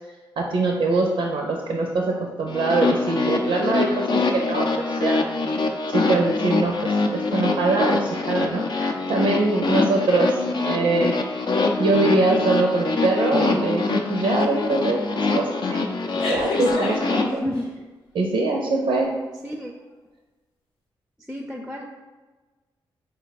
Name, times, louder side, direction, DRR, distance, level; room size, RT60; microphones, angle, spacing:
voice 1, 0.4-5.2 5.9-10.3 10.7-11.1 11.8-17.2 18.1-19.1, right 3 dB, 75° right, 1 dB, 0.5 m, -23 dB
sound 1, 2.5-17.2, left 3 dB, 55° left, 0.5 m, -24 dB
voice 2, 10.3-10.8 17.2-17.7 19.4-19.7 21.3-21.8, left 1 dB, 10° right, 2 dB, 0.5 m, -31 dB
sound 2, 14.4-14.7 15.1-15.3 16.1-17.6, left 2 dB, 90° left, 0.8 m, -28 dB
4.1 x 2.2 x 4.0 m, 1.3 s
supercardioid pair, 55°, 9 cm